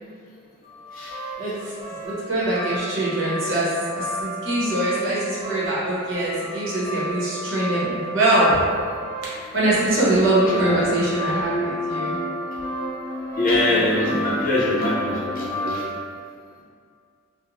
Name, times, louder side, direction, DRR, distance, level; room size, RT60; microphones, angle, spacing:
sound 1, 0.6-16.0, equal, 15° right, 1.0 m, -33 dB
voice 1, 1.4-1.7 2.0-8.6 9.5-12.2 13.7-14.2, right 1 dB, 60° right, -9 dB, 0.8 m, -23 dB
sound 2, 10.1-15.5, left 1 dB, 85° left, 0.6 m, -32 dB
voice 2, 10.5-10.9 13.4-15.8, left 1 dB, 40° left, -6 dB, 0.5 m, -23 dB
2.5 x 2.0 x 3.0 m, 2.2 s
head